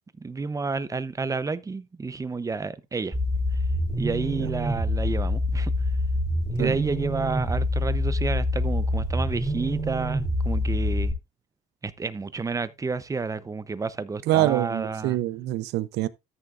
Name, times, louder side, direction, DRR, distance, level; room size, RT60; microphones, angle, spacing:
voice 1, 0.2-3.2 4.0-5.7 6.6-11.2 11.8-15.2, right 4 dB, 20° right, 0.7 m, -30 dB
sound 1, 3.1-11.1, left 1 dB, ahead, 3.7 m, -26 dB
voice 2, 14.3-16.1, right 15 dB, 80° right, 0.7 m, -25 dB
13.5 x 6.7 x 2.5 m
cardioid pair, 110°, 17 cm